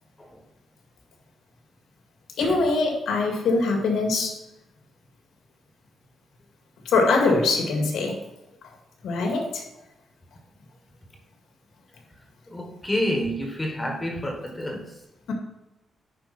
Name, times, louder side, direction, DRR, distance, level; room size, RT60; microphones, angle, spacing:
voice 1, 2.4-4.4 6.9-8.2 9.0-9.6 15.3-15.4, left 3 dB, 90° left, 1 dB, 1.9 m, -22 dB
voice 2, 12.5-14.9, equal, 15° left, 1 dB, 1.3 m, -28 dB
10.5 x 4.7 x 4.2 m, 0.95 s
wide cardioid pair, 150°, 0 cm